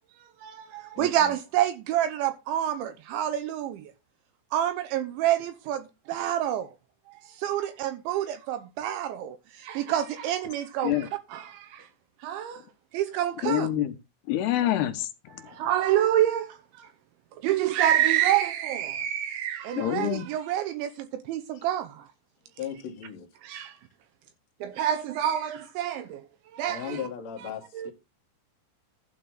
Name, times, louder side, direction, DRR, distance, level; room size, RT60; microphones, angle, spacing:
voice 1, 0.4-3.9 4.5-6.7 7.3-11.9 12.2-12.6 12.9-13.7 15.4-16.9 17.4-22.1 23.4-23.8 24.6-26.2 26.5-27.0 27.8-27.9, right 11 dB, 80° right, 2.9 m, -28 dB
voice 2, 0.9-1.3 21.5-21.7 22.6-23.3 26.7-27.9, left 8 dB, 55° left, 2.0 m, -37 dB
voice 3, 13.4-13.9 14.3-15.6 19.8-20.3, left 12 dB, 75° left, 2.5 m, -27 dB
12.0 x 4.1 x 7.9 m
omnidirectional pair, 5.9 m